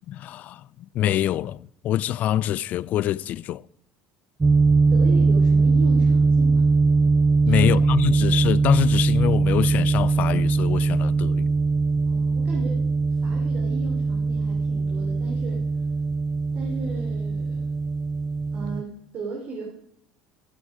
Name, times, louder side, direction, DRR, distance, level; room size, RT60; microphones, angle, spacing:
voice 1, 0.1-3.6 7.5-11.5, left 12 dB, 55° left, 0.4 m, -25 dB
sound 1, 4.4-18.8, right 4 dB, 20° right, 0.5 m, -21 dB
voice 2, 4.9-6.7 7.4-8.2 12.1-15.6 16.5-17.7 18.5-19.7, right 3 dB, 50° right, 3.2 m, -37 dB
13.5 x 8.5 x 5.0 m
supercardioid pair, 90°, 3 cm